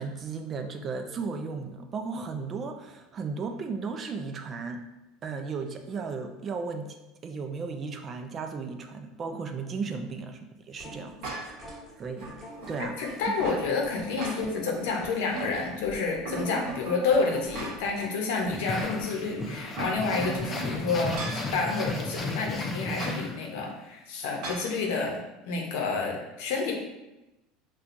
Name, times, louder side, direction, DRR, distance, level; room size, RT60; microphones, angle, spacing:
voice 1, 0.0-4.8 5.2-6.9 7.2-10.4 10.7-11.7 12.0-12.3 12.7-13.0 13.3-13.4, right 4 dB, 30° right, 5 dB, 0.3 m, -35 dB
sound 1, 10.8-18.2 18.5-22.2 22.5-22.6, left 1 dB, 5° left, 1.2 m, -47 dB
sound 2, 11.2-11.7 12.2-13.6 14.0-14.8 15.1-15.9 16.2-18.0 18.4-18.5 19.5-21.5 22.9-23.2 24.4-24.7, right 2 dB, 60° right, 1.0 m, -38 dB
voice 2, 13.0-25.2 25.4-26.7, left 4 dB, 80° left, 0 dB, 0.7 m, -29 dB
sound 3, 18.5-23.7, left 2 dB, 25° left, 0.5 m, -34 dB
4.2 x 2.3 x 2.6 m, 1.0 s
supercardioid pair, 125°, 0 cm